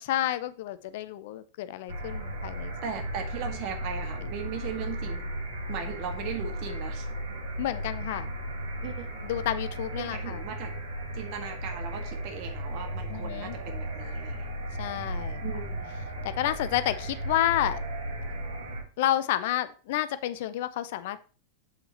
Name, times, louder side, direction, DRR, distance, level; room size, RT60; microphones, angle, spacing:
voice 1, 0.0-2.7 7.6-8.3 9.2-10.4 13.1-13.6 14.8-15.4 16.4-17.8 19.0-21.2, left 13 dB, 50° left, 13 dB, 0.5 m, -30 dB
sound 1, 1.9-18.8, right 1 dB, 60° right, 1.7 m, -35 dB
voice 2, 2.8-5.3 5.7-7.1 8.8-9.1 10.0-10.7 11.1-14.5 15.4-15.9, right 7 dB, 45° right, 5 dB, 1.5 m, -38 dB
7.5 x 6.9 x 2.9 m, 0.36 s
figure-of-eight pair, 90°, 0 cm